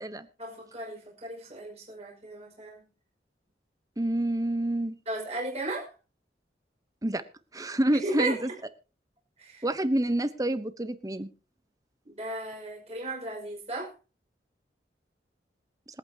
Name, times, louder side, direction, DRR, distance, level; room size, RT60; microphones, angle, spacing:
voice 1, 0.4-2.8 5.1-5.9 7.9-8.4 9.4-9.7 12.0-13.9, right 2 dB, 35° right, -1 dB, 5.5 m, -35 dB
voice 2, 4.0-4.9 7.0-7.2 7.5-8.5 9.6-11.3, right 1 dB, 20° right, 12 dB, 0.9 m, -28 dB
26.5 x 8.8 x 2.8 m, 0.32 s
head